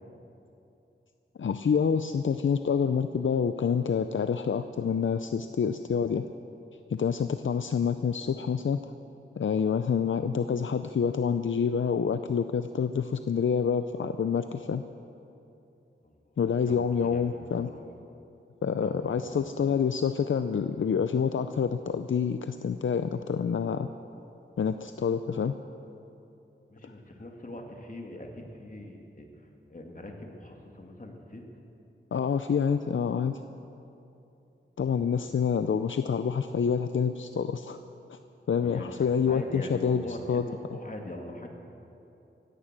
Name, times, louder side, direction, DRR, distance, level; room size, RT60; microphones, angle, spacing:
voice 1, 1.4-6.2 6.9-8.8 9.4-14.8 16.4-17.7 18.6-23.9 24.6-25.5 32.1-33.4 34.8-37.8 38.1-38.2 38.5-40.4, left 6 dB, 75° left, 10 dB, 0.5 m, -27 dB
voice 2, 16.0-16.4 16.7-17.8 18.8-19.4 26.7-31.4 38.6-38.9 39.3-41.5, left 1 dB, 40° left, 1 dB, 2.2 m, -42 dB
16.5 x 11.0 x 7.5 m, 2.8 s
wide cardioid pair, 60°, 20 cm